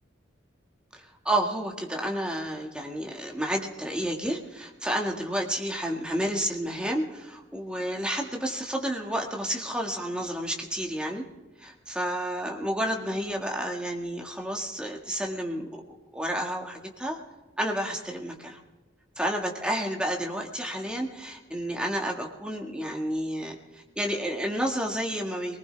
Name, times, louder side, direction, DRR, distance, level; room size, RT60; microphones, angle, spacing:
voice 1, 0.9-11.3 11.6-15.7 16.1-17.2 17.6-18.6 19.2-25.6, equal, 5° right, 1 dB, 1.7 m, -30 dB
21.5 x 19.5 x 3.4 m, 1.2 s
head